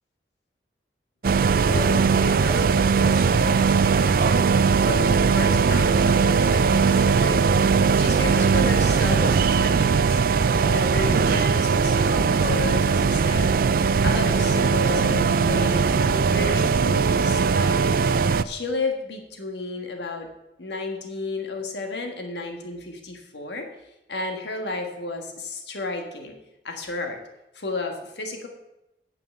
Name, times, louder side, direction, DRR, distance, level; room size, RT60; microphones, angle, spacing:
sound 1, 1.2-18.4, right 5 dB, 50° right, 0.3 m, -20 dB
voice 1, 1.7-4.4 4.8-7.4 7.7-10.2 10.6-13.5 14.0-17.9 18.4-20.3 20.6-23.7 24.1-26.3 26.6-27.2 27.5-28.5, left 3 dB, 75° left, 4 dB, 1.5 m, -32 dB
Acoustic guitar / Strum, 14.9-18.3, left 3 dB, 30° left, 3.4 m, -40 dB
9.1 x 5.8 x 7.8 m, 0.91 s
head